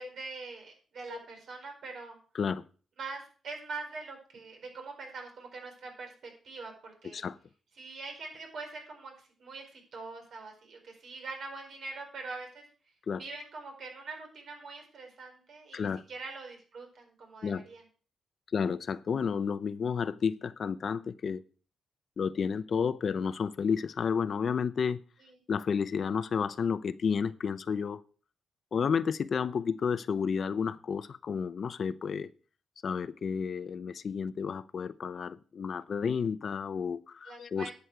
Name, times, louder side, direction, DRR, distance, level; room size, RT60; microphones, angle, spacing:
voice 1, 0.0-2.2 3.0-7.2 7.8-9.1 9.4-12.7 13.2-17.8 37.2-37.7, right 3 dB, 70° right, 3 dB, 4.6 m, -43 dB
voice 2, 15.7-16.0 17.4-17.6 18.5-21.4 22.2-25.0 25.5-28.0 28.7-32.3 32.8-37.7, left 6 dB, 55° left, 16 dB, 0.6 m, -31 dB
11.5 x 8.0 x 4.7 m, 0.40 s
cardioid pair, 100°, 0 cm